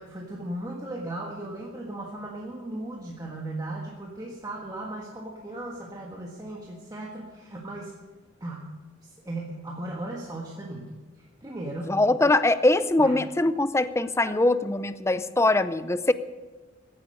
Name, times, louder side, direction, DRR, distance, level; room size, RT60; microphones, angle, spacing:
voice 1, 0.0-7.9 8.4-8.7 9.0-10.9 11.2-11.9 13.0-13.1 14.3-14.4, right 1 dB, 20° right, -2 dB, 1.5 m, -37 dB
voice 2, 11.9-16.1, left 2 dB, 15° left, 13 dB, 0.5 m, -22 dB
16.0 x 10.0 x 6.5 m, 1.3 s
head